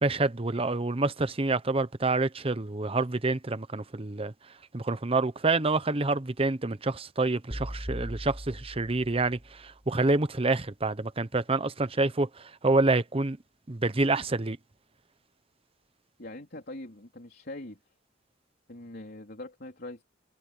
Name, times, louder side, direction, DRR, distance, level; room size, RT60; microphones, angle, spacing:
voice 1, 0.0-4.3 4.7-13.4 13.7-14.6, right 3 dB, 30° right, 0.9 m, -27 dB
sound 1, 7.5-9.7, equal, 10° right, 4.3 m, -39 dB
voice 2, 16.2-17.8 18.7-20.0, left 2 dB, 55° left, 3.9 m, -42 dB
head